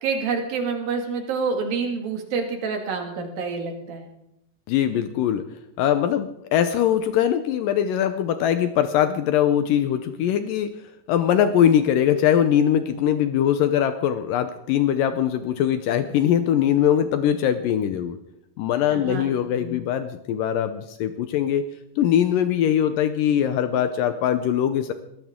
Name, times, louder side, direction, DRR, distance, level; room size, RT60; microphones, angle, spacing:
voice 1, 0.0-4.1 18.9-19.8, right 5 dB, 60° right, 3 dB, 3.8 m, -28 dB
voice 2, 4.7-5.4 5.8-10.7 11.1-18.2 18.6-21.6 22.0-24.9, left 10 dB, 80° left, 10 dB, 2.0 m, -21 dB
21.5 x 15.5 x 3.7 m, 0.81 s
omnidirectional pair, 4.9 m